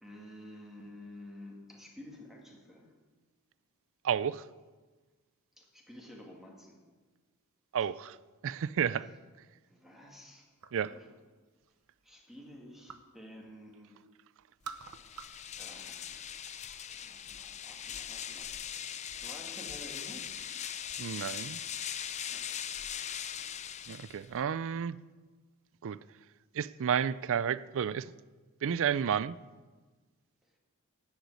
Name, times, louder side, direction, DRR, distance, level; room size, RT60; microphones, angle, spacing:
voice 1, 0.0-2.9 5.6-6.8 9.7-10.5 10.8-11.2 12.0-14.0 15.6-16.3 16.6-18.5 18.8-20.3 22.3-22.6, left 1 dB, ahead, 2.0 m, -51 dB
voice 2, 4.0-4.4 7.7-8.2 8.4-9.1 10.7-10.9 21.0-21.6 23.9-25.0 25.8-26.0 26.5-28.1 28.6-29.4, right 8 dB, 60° right, 0.4 m, -31 dB
sound 1, 10.6-11.1 11.5-13.2 13.5-14.1 14.4-15.5 15.8-16.6, right 6 dB, 80° right, 0.9 m, -48 dB
sound 2, 14.8-24.4, left 9 dB, 30° left, 0.5 m, -40 dB
10.0 x 8.2 x 9.5 m
head